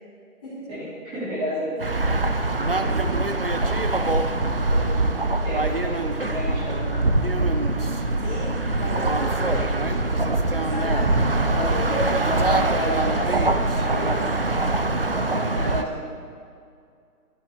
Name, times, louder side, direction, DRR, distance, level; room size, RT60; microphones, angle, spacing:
voice 1, 0.7-1.8 4.7-5.1 5.4-7.0 10.8-10.9 11.5-11.8 12.2-13.0 13.7-14.2 15.5-16.0, equal, 15° right, -9 dB, 2.8 m, -31 dB
sound 1, 1.8-15.8, right 2 dB, 40° right, 0.4 m, -23 dB
voice 2, 2.3-3.2 8.2-8.5 8.8-9.1 9.4-10.0 10.5-12.1 12.6-14.2 15.3-15.7, left 1 dB, 5° left, -14 dB, 0.8 m, -35 dB
11.5 x 11.5 x 3.5 m, 2.3 s
hypercardioid pair, 160°, 45 cm